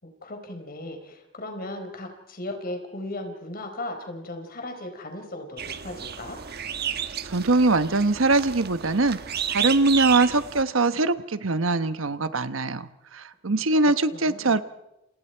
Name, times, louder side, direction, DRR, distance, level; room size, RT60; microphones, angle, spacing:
voice 1, 0.0-6.4 13.5-13.6 14.1-14.6, left 1 dB, 50° left, 5 dB, 4.6 m, -37 dB
sound 1, 5.6-10.6, right 8 dB, 55° right, 1.2 m, -32 dB
voice 2, 7.2-9.2 9.5-14.6, right 3 dB, 80° right, 12 dB, 1.1 m, -22 dB
29.0 x 28.0 x 4.6 m, 0.90 s
head